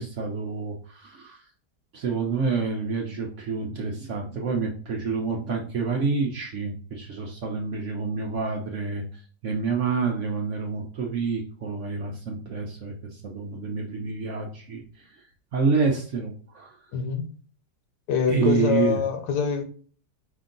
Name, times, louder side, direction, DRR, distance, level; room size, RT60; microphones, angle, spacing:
voice 1, 0.0-1.4 1.9-9.0 9.4-15.1 15.5-16.7 18.3-19.0, right 4 dB, 60° right, 1 dB, 0.8 m, -28 dB
voice 2, 16.9-17.3 18.1-19.6, left 6 dB, 80° left, 5 dB, 1.5 m, -25 dB
5.1 x 2.7 x 3.7 m, 0.43 s
omnidirectional pair, 1.8 m